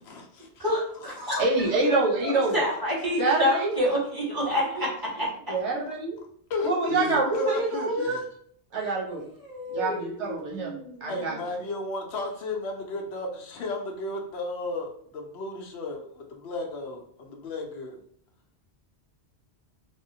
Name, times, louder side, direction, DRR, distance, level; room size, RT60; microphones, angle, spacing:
voice 1, 0.0-0.6 6.5-8.3 11.1-18.0, left 2 dB, 75° left, 2 dB, 0.8 m, -33 dB
voice 2, 0.6-1.4 2.2-4.9 9.4-11.4, left 1 dB, 20° right, -7 dB, 1.1 m, -28 dB
voice 3, 1.4-2.6 3.2-3.7 5.5-6.2 6.6-8.2 8.7-9.2 9.7-10.7 11.0-11.3, right 3 dB, 85° right, -3 dB, 1.2 m, -26 dB
3.5 x 2.0 x 2.7 m, 0.63 s
omnidirectional pair, 1.1 m